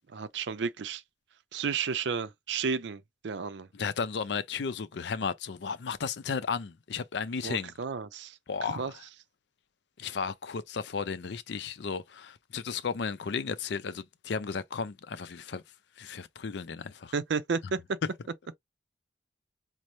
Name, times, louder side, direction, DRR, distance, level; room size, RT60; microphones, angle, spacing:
voice 1, 0.1-1.0 1.5-3.7 7.4-8.4 8.7-8.9 17.1-17.8, right 5 dB, 70° right, 0.5 m, -32 dB
voice 2, 3.7-7.7 8.5-9.0 10.0-15.6 16.0-17.1, left 5 dB, 65° left, 0.5 m, -34 dB
5.3 x 2.0 x 3.1 m
head